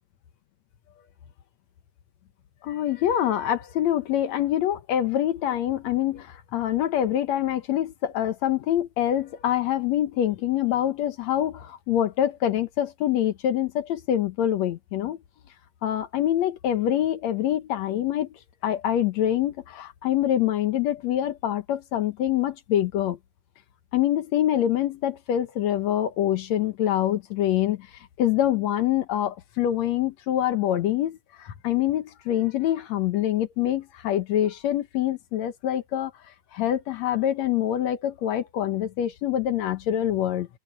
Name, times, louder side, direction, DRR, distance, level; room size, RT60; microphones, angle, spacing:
voice 1, 2.6-15.2 15.8-23.2 23.9-27.9 28.2-36.1 36.5-40.5, left 11 dB, 70° left, 2.1 m, -25 dB
omnidirectional pair, 3.5 m